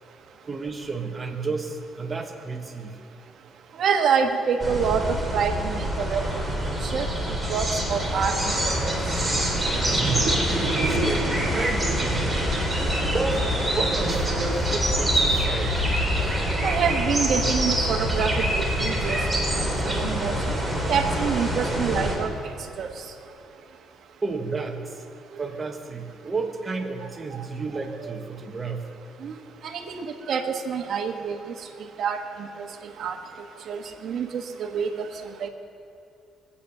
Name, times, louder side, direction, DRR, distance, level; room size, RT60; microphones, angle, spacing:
voice 1, 0.4-3.0 9.7-10.5 10.9-11.2 11.6-12.3 13.1-15.9 24.2-25.0 25.4-28.9 33.8-34.0, right 3 dB, 20° right, 4 dB, 1.4 m, -31 dB
voice 2, 3.8-6.2 6.8-7.1 7.5-8.9 10.1-11.1 16.6-19.2 19.5-20.3 20.9-22.3 22.8-22.9 28.0-28.1 29.2-29.3 29.6-31.4 32.0-33.2 33.7-35.1 35.4-35.5, right 6 dB, 55° right, 5 dB, 1.3 m, -27 dB
sound 1, 4.6-22.1, equal, ahead, 3.0 m, -25 dB
21.5 x 8.6 x 6.7 m, 2.6 s
cardioid pair, 135°, 0 cm